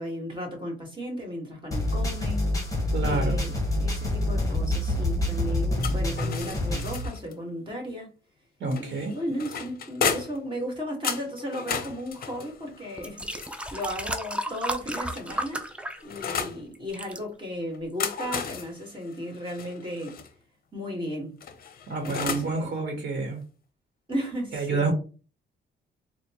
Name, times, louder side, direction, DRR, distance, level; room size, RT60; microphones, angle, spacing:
voice 1, 0.0-2.6 3.0-3.5 3.8-8.1 8.8-13.3 13.7-15.6 16.0-20.2 20.7-21.3 22.0-22.7 24.1-24.9, equal, 25° right, 1.7 m, -35 dB
sound 1, 1.7-7.1, left 1 dB, 15° left, 1.1 m, -27 dB
voice 2, 2.9-3.4 8.6-9.2 21.9-23.4 24.5-24.9, right 3 dB, 60° right, 1.1 m, -28 dB
sound 2, 5.8-7.4 8.7-10.5 11.0-14.0 14.8-16.6 17.7-20.3 21.4-22.6, left 6 dB, 50° left, 0.6 m, -34 dB
sound 3, 12.3-12.5 13.0-16.5 16.7-17.2 17.9-18.0, right 1 dB, 5° right, 0.4 m, -33 dB
4.1 x 2.2 x 2.9 m
cardioid pair, 90°, 20 cm